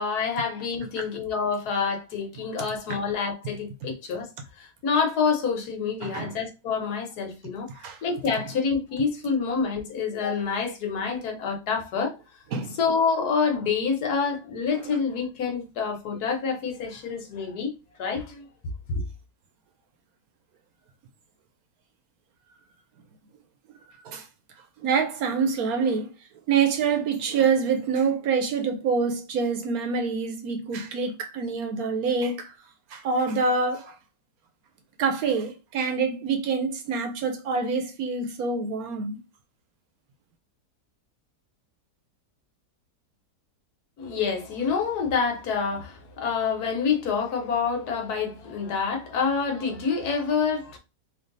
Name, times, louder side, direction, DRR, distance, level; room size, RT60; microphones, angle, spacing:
voice 1, 0.0-4.3 4.6-7.7 8.0-12.1 12.8-18.5 18.9-19.0 44.0-50.8, left 5 dB, 70° left, 1.4 m, -27 dB
voice 2, 6.0-6.4 7.7-8.0 12.5-12.8 14.8-14.9 24.0-24.3 24.8-26.1 26.5-32.5 32.9-34.0 35.0-39.2, right 5 dB, 70° right, 1.0 m, -26 dB
3.3 x 2.6 x 3.9 m
omnidirectional pair, 1.8 m